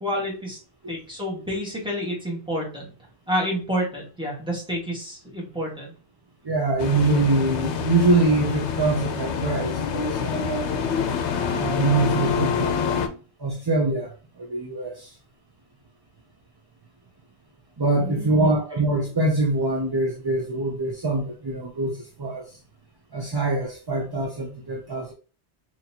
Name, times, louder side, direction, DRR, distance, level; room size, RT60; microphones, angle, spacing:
voice 1, 0.0-0.6 0.9-2.8 3.3-5.9 18.0-18.6, equal, 5° right, -4 dB, 1.4 m, -29 dB
voice 2, 6.4-10.9 11.5-15.1 17.8-22.6 23.1-25.1, right 2 dB, 35° right, -2 dB, 0.4 m, -24 dB
sound 1, 6.8-13.1, left 6 dB, 80° left, 0.9 m, -26 dB
4.1 x 2.9 x 2.8 m, 0.36 s
omnidirectional pair, 1.1 m